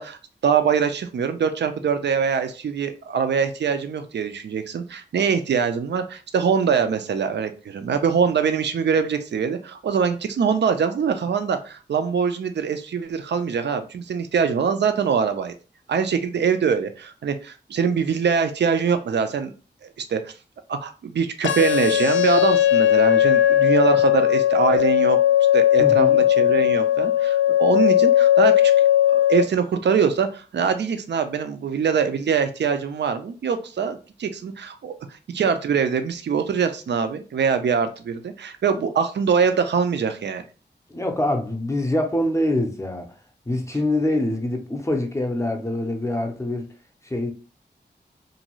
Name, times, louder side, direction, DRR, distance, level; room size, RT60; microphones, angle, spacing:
voice 1, 0.0-15.5 15.9-19.5 20.1-20.3 20.7-25.2 25.5-28.7 29.1-40.4, right 6 dB, 70° right, 0.4 m, -23 dB
sound 1, 21.4-29.4, left 12 dB, 85° left, 0.4 m, -18 dB
voice 2, 25.8-26.2 40.9-43.1 43.5-46.7 47.1-47.3, left 1 dB, 15° left, 0.5 m, -24 dB
2.6 x 2.3 x 2.9 m
wide cardioid pair, 65°, 19 cm